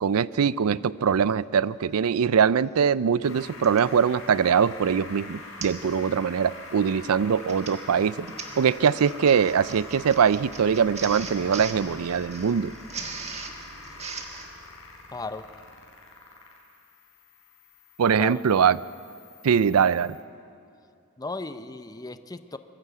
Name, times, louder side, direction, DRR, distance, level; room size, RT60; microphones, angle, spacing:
voice 1, 0.0-8.3 8.6-12.7 18.0-18.8 19.4-20.2, right 7 dB, 85° right, 19 dB, 0.4 m, -22 dB
Printer, 2.4-2.5 3.6-3.9 4.5-4.7 5.0-5.1 5.6-5.9 6.2-6.5 7.3-14.5, right 4 dB, 30° right, 1.6 m, -40 dB
sound 1, 3.2-20.2, left 2 dB, 70° left, 3.7 m, -44 dB
voice 2, 15.1-15.5 18.2-18.4 21.2-22.6, left 3 dB, 20° left, 11 dB, 0.6 m, -35 dB
22.5 x 14.5 x 8.0 m, 2.4 s
head